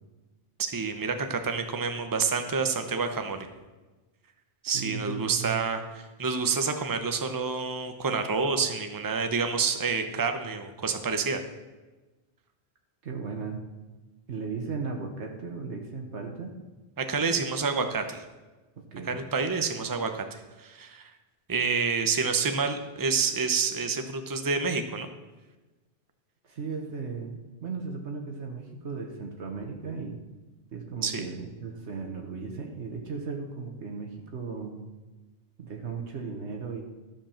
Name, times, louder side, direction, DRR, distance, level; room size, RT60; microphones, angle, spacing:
voice 1, 0.6-3.5 4.6-11.4 17.0-18.2 19.1-21.1 21.5-25.1 31.0-31.2, right 5 dB, 20° right, 6 dB, 0.7 m, -28 dB
voice 2, 4.7-5.7 13.0-13.6 14.3-16.6 18.8-19.2 26.4-27.3 27.6-30.2 30.7-34.8 35.6-36.8, right 5 dB, 75° right, 3 dB, 1.4 m, -36 dB
13.0 x 5.3 x 7.2 m, 1.2 s
omnidirectional pair, 1.2 m